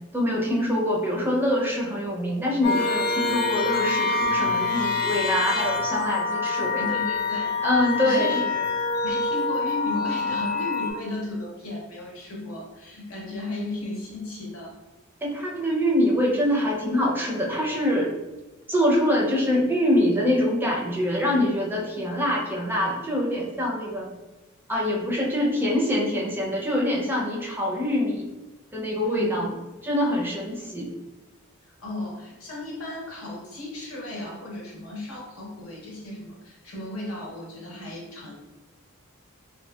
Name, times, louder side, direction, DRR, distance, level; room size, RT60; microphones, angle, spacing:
voice 1, 0.1-6.8 7.6-8.4 15.2-18.1 18.7-24.1 24.7-28.3 28.7-29.5 29.8-30.9, left 1 dB, 10° right, -3 dB, 0.4 m, -24 dB
sound 1, 2.6-10.9, left 3 dB, 45° left, 0.4 m, -26 dB
voice 2, 6.8-7.6 8.0-8.7 9.0-14.8 29.0-29.5 31.6-38.3, left 2 dB, 80° left, -2 dB, 0.8 m, -35 dB
2.7 x 2.6 x 2.2 m, 1.1 s
head